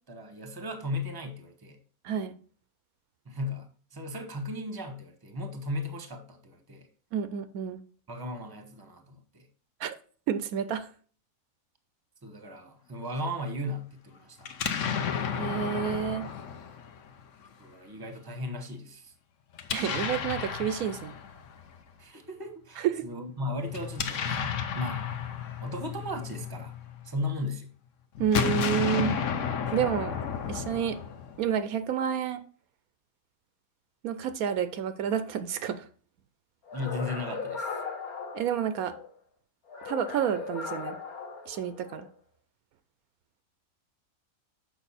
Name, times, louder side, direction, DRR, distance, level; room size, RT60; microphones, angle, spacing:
voice 1, 0.0-1.8 3.2-6.9 8.1-9.5 12.2-14.5 17.6-19.1 22.0-24.4 24.7-25.0 25.6-26.7 27.0-27.7 36.7-37.8, left 1 dB, 15° right, 6 dB, 0.9 m, -36 dB
voice 2, 7.1-7.8 9.8-9.9 10.3-10.9 15.4-16.3 19.7-21.1 22.8-23.0 28.2-29.2 29.7-30.2 30.5-31.0 31.4-32.4 34.0-35.9 38.3-38.9 39.8-41.0 41.5-42.1, right 8 dB, 75° right, 12 dB, 1.0 m, -29 dB
Explosion, 14.4-17.5 19.5-21.8 23.7-27.1 28.2-31.5, left 7 dB, 60° left, 1.0 m, -32 dB
sound 1, 36.7-39.1 39.7-42.1, left 5 dB, 80° left, 1.7 m, -38 dB
7.2 x 5.4 x 4.2 m, 0.43 s
omnidirectional pair, 1.6 m